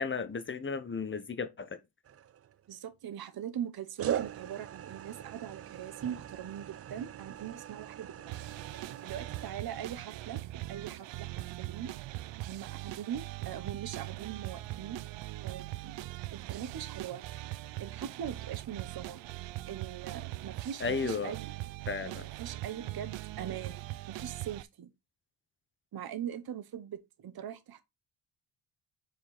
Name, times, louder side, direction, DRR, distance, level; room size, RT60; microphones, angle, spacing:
voice 1, 0.0-1.8 20.8-21.3 21.9-22.2, left 5 dB, 25° left, 1.0 m, -34 dB
Industrial motor on of, 2.0-2.7 4.0-9.5, right 10 dB, 35° right, 0.4 m, -40 dB
voice 2, 2.7-8.5 8.8-12.0 12.5-15.0 15.4-16.0 16.3-17.2 17.8-19.2 19.7-21.5 22.0-23.8 24.1-24.9 25.9-27.8, right 9 dB, 55° right, 1.1 m, -41 dB
sound 1, 8.3-24.6, right 16 dB, 85° right, 0.6 m, -41 dB
5.3 x 4.8 x 5.6 m
cardioid pair, 90°, 44 cm